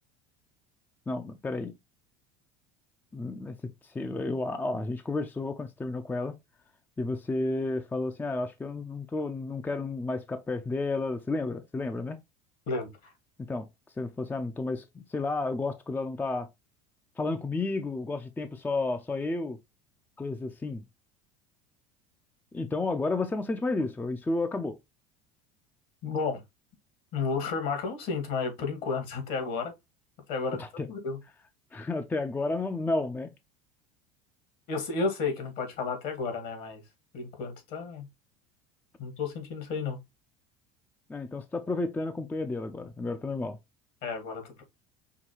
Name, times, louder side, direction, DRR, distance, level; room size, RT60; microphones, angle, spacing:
voice 1, 1.1-1.7 3.1-6.4 7.0-12.2 13.4-13.7 14.0-16.5 17.2-19.6 20.2-20.8 22.5-24.8 30.6-30.9 31.7-33.3 41.1-43.6, left 3 dB, 10° left, 0.4 m, -32 dB
voice 2, 26.0-26.4 27.1-29.7 30.3-30.6 30.9-31.2 34.7-36.8 37.1-38.1 39.0-40.0 44.0-44.6, left 4 dB, 60° left, 1.8 m, -32 dB
5.6 x 2.2 x 3.0 m
hypercardioid pair, 90°, 17 cm